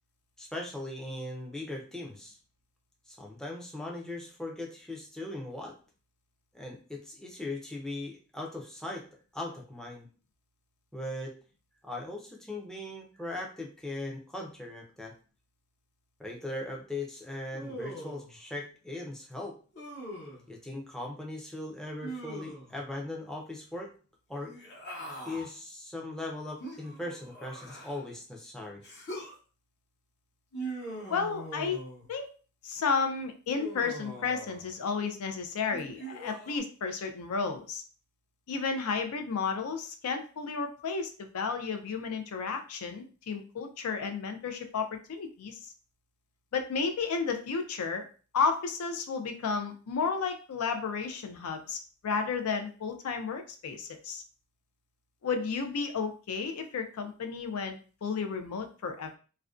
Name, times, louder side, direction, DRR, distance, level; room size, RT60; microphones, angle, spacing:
voice 1, 0.4-2.4 3.1-5.8 6.5-9.0 9.3-10.1 10.9-11.3 11.8-15.1 16.2-19.6 20.5-23.9 24.3-24.5 25.2-28.8, left 2 dB, 5° left, 0 dB, 0.4 m, -39 dB
Human voice, 17.5-18.3 19.7-20.4 22.0-22.8 24.4-25.5 26.6-28.1 28.8-29.4 30.5-32.1 33.5-34.7 35.7-36.6, right 1 dB, 50° left, 0.8 m, -42 dB
voice 2, 31.1-31.8 32.1-32.3 32.6-37.8 38.5-45.7 46.5-48.0 48.3-54.2 55.2-59.2, left 5 dB, 80° left, 6 dB, 0.4 m, -32 dB
2.4 x 2.1 x 2.4 m, 0.38 s
head